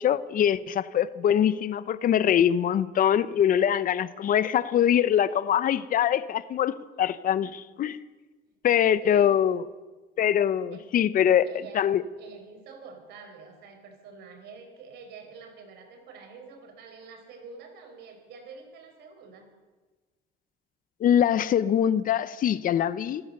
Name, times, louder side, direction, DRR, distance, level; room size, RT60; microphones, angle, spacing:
voice 1, 0.0-8.0 8.6-9.6 10.2-11.5 11.7-12.0 21.0-23.2, left 9 dB, 55° left, 0.9 m, -23 dB
voice 2, 10.7-11.9 12.2-19.5, right 4 dB, 75° right, 4.9 m, -47 dB
26.5 x 15.0 x 6.7 m
cardioid pair, 110°, 17 cm